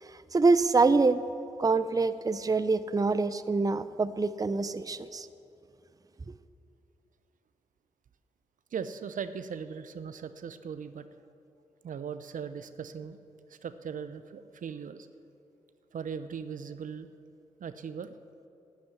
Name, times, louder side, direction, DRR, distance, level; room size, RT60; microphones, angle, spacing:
voice 1, 0.0-1.2 1.6-5.3, right 3 dB, 25° right, 13 dB, 0.6 m, -25 dB
voice 2, 8.7-11.1 11.8-13.2 13.5-15.1 15.9-17.1 17.6-18.1, right 7 dB, 65° right, 12 dB, 0.6 m, -39 dB
11.5 x 7.7 x 9.8 m, 2.7 s
supercardioid pair, 40°, 14 cm